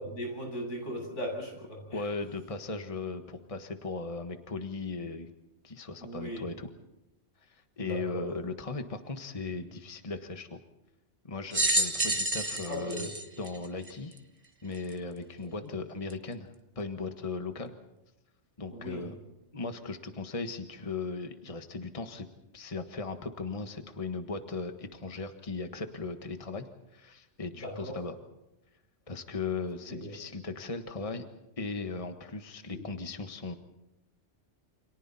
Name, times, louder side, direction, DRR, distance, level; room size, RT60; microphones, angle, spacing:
voice 1, 0.0-2.2 6.0-6.5 7.8-8.3 12.7-13.1 15.6-15.7 18.7-19.1 27.5-28.0 29.9-30.1 32.7-32.8, equal, 85° left, 0 dB, 8.6 m, -38 dB
voice 2, 1.9-5.3 5.6-6.7 7.4-10.6 11.2-13.1 13.4-14.1 14.6-16.5 16.7-17.8 18.6-19.1 19.5-22.3 22.5-26.7 26.9-28.1 29.1-31.3 31.6-33.5, left 3 dB, 30° left, 6 dB, 1.5 m, -37 dB
sound 1, 11.5-14.2 14.9-15.0 16.1-16.2, right 1 dB, 30° right, 1.5 m, -29 dB
29.5 x 27.0 x 4.2 m, 0.92 s
omnidirectional pair, 1.2 m